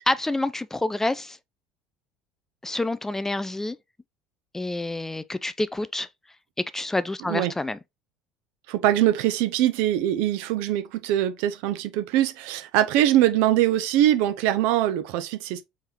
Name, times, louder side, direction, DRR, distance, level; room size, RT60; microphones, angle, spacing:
voice 1, 0.1-1.4 2.6-3.8 4.5-6.1 6.7-7.8, left 2 dB, 10° left, 0.3 m, -27 dB
voice 2, 8.7-15.6, right 12 dB, 60° right, 0.6 m, -22 dB
4.0 x 3.7 x 3.0 m
figure-of-eight pair, 65°, 3 cm